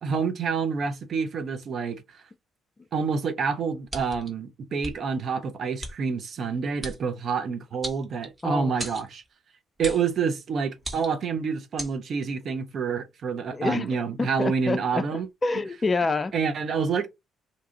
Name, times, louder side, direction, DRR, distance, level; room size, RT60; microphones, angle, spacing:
voice 1, 0.0-2.2 2.9-9.2 9.8-15.3 16.3-17.1, right 5 dB, 55° right, 0.5 m, -28 dB
sound 1, 3.9-4.3 4.8-5.0 5.8-5.9 6.8-7.0 7.8-8.4 8.8-9.1 9.8-10.1 10.8-11.3 11.8-11.9, right 1 dB, 25° right, 1.0 m, -36 dB
voice 2, 13.5-16.3, left 3 dB, 30° left, 0.3 m, -28 dB
2.6 x 2.3 x 2.7 m
figure-of-eight pair, 45°, 0 cm